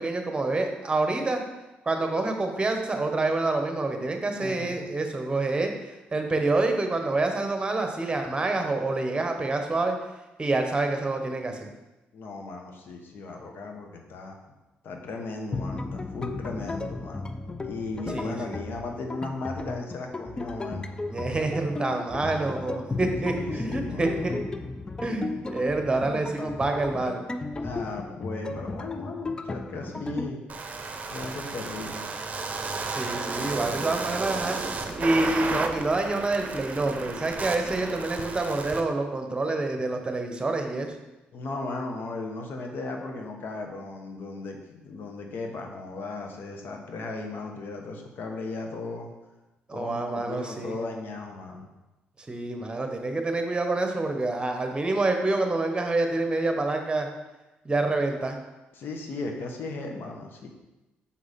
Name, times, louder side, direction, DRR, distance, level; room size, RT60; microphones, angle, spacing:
voice 1, 0.0-1.4 1.8-10.0 10.4-11.7 18.1-18.4 21.1-24.4 25.0-27.2 32.8-34.6 35.0-40.9 49.7-50.7 52.3-57.1 57.6-58.4, right 2 dB, 25° right, 5 dB, 1.1 m, -27 dB
voice 2, 12.1-14.4 14.8-17.2 17.6-21.0 23.3-24.3 27.6-30.4 31.1-32.0 41.3-49.1 49.7-51.7 58.7-60.5, left 3 dB, 65° left, 3 dB, 1.1 m, -36 dB
sound 1, 15.5-30.3, left 3 dB, 20° left, 0.4 m, -35 dB
sound 2, 30.5-38.8, right 4 dB, 40° right, 0.7 m, -33 dB
5.7 x 4.7 x 4.2 m, 1.0 s
supercardioid pair, 70°, 4 cm